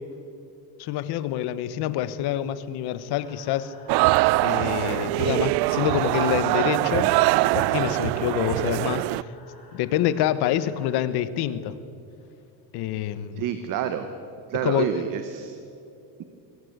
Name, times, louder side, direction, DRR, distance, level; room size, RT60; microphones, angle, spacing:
voice 1, 0.8-3.7 4.4-7.1 7.5-9.0 9.7-11.7 12.7-13.4 14.6-14.8, left 11 dB, 65° left, 14 dB, 1.3 m, -26 dB
sound 1, 3.2-10.9, left 3 dB, 15° left, 6.3 m, -49 dB
sound 2, 3.9-9.2, right 20 dB, 65° right, 0.5 m, -23 dB
voice 2, 13.4-14.1 14.5-15.6, right 9 dB, 50° right, 9 dB, 1.3 m, -28 dB
22.5 x 18.0 x 8.2 m, 2.7 s
cardioid pair, 155°, 43 cm